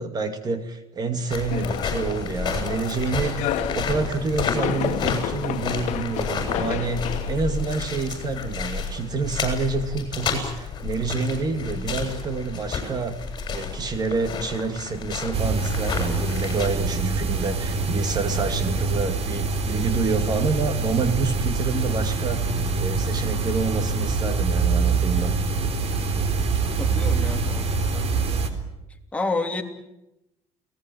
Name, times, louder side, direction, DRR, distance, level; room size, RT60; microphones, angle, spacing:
voice 1, 0.0-13.2 13.5-22.5 22.8-25.3, right 4 dB, 35° right, 9 dB, 2.2 m, -28 dB
sound 1, 1.3-16.7, left 5 dB, 35° left, 7.7 m, -31 dB
sound 2, 1.5-8.6, left 13 dB, 75° left, 1.6 m, -32 dB
sound 3, 15.3-28.5, right 4 dB, 55° right, 3.7 m, -25 dB
voice 2, 26.8-28.1 29.1-29.6, left 3 dB, 10° left, 3 dB, 3.1 m, -30 dB
30.0 x 19.0 x 9.3 m, 0.91 s
cardioid pair, 130°, 12 cm